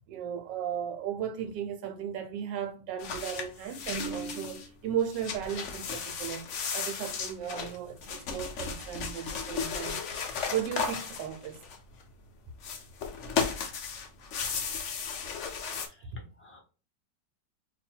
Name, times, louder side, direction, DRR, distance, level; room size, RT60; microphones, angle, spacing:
voice 1, 0.1-6.4 6.7-10.0 10.5-11.6, right 8 dB, 80° right, 1.3 m, -35 dB
sound 1, 3.0-4.7 5.0-12.0 12.6-15.9, left 6 dB, 65° left, 0.7 m, -35 dB
voice 2, 15.8-16.6, left 2 dB, 10° left, 0.7 m, -55 dB
2.8 x 2.6 x 4.2 m
omnidirectional pair, 1.9 m